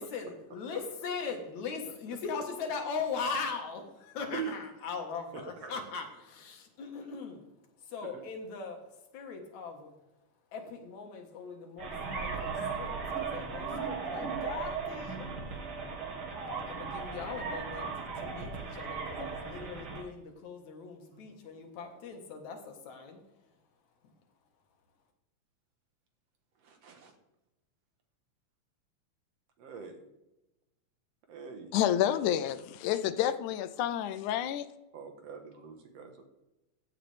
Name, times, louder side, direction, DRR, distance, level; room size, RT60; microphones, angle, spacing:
voice 1, 0.0-7.5 7.8-10.0 10.5-15.3 16.7-23.6 24.0-24.1, left 5 dB, 75° left, 3 dB, 2.9 m, -40 dB
sound 1, 11.8-20.0, right 5 dB, 45° right, 2.4 m, -37 dB
voice 2, 26.6-27.2 29.6-30.1 31.3-31.8 34.9-36.2, right 7 dB, 65° right, 5 dB, 2.3 m, -43 dB
voice 3, 31.7-34.7, left 11 dB, 90° left, 12 dB, 2.1 m, -29 dB
15.0 x 9.0 x 3.4 m, 0.97 s
omnidirectional pair, 3.4 m